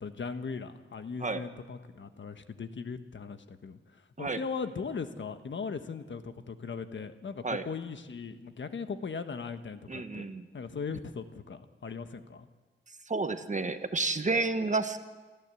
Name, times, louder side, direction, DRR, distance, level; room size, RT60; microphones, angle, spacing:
voice 1, 0.0-10.3 10.5-12.5, left 5 dB, 70° left, 9 dB, 1.3 m, -39 dB
voice 2, 9.9-10.5 13.1-15.0, right 3 dB, 35° right, 9 dB, 1.4 m, -30 dB
24.0 x 14.5 x 8.4 m, 1.3 s
wide cardioid pair, 90°, 20 cm